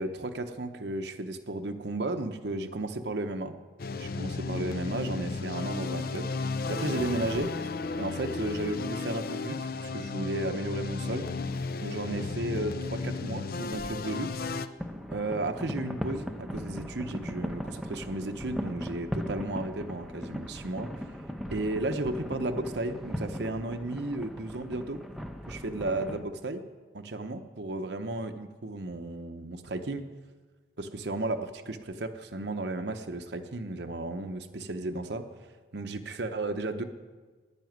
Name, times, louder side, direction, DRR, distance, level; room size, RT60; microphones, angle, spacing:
voice 1, 0.0-3.6 3.9-6.3 6.7-7.5 8.0-11.3 11.8-14.4 15.1-20.9 21.5-25.0 25.5-26.6 26.9-30.0 30.8-35.3 35.7-36.8, right 2 dB, 65° right, 7 dB, 0.9 m, -34 dB
sound 1, 3.8-14.7, left 4 dB, 55° left, 0.6 m, -34 dB
sound 2, 14.8-26.2, equal, ahead, 0.8 m, -38 dB
11.0 x 9.8 x 9.4 m, 1.4 s
head